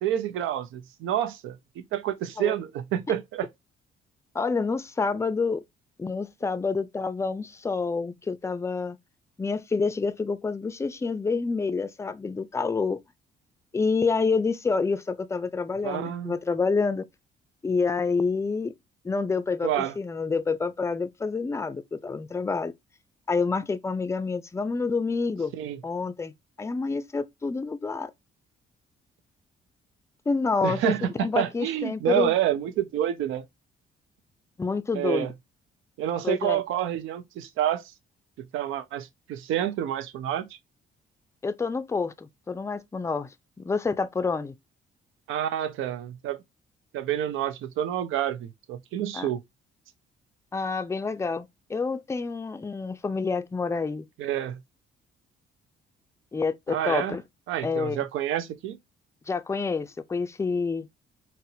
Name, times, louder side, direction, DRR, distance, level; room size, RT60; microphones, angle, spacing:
voice 1, 0.0-3.5 15.8-16.3 19.6-19.9 25.5-25.8 30.6-33.4 34.9-35.3 36.0-37.8 38.5-40.5 45.3-46.4 46.9-49.4 54.2-54.6 56.7-57.2 57.5-58.8, right 11 dB, 85° right, 0.5 m, -28 dB
voice 2, 4.3-5.6 6.0-9.0 9.4-13.0 13.7-17.1 17.6-18.7 19.0-22.7 23.3-25.5 25.8-26.3 26.6-28.1 30.3-32.3 34.6-35.3 36.2-36.6 41.4-43.3 43.6-44.5 49.1-49.3 50.5-54.1 56.3-57.2 57.6-58.0 59.3-60.9, left 4 dB, 15° left, 0.4 m, -28 dB
4.1 x 2.0 x 2.7 m
cardioid pair, 90°, 20 cm